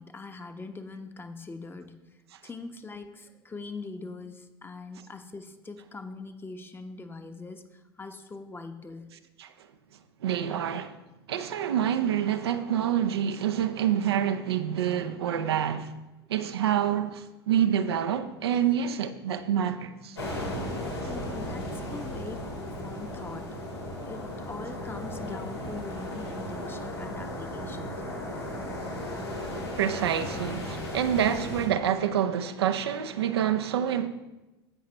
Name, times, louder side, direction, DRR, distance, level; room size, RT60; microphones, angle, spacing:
voice 1, 0.0-9.2 21.0-23.6 24.1-28.0, left 3 dB, 15° left, 0.9 m, -42 dB
voice 2, 10.2-11.0 11.3-15.9 16.3-20.2 29.8-34.1, right 9 dB, 75° right, 0.6 m, -27 dB
sound 1, 20.1-31.7, left 1 dB, 90° left, 2.6 m, -35 dB
16.5 x 5.8 x 3.3 m
hypercardioid pair, 80°, 13 cm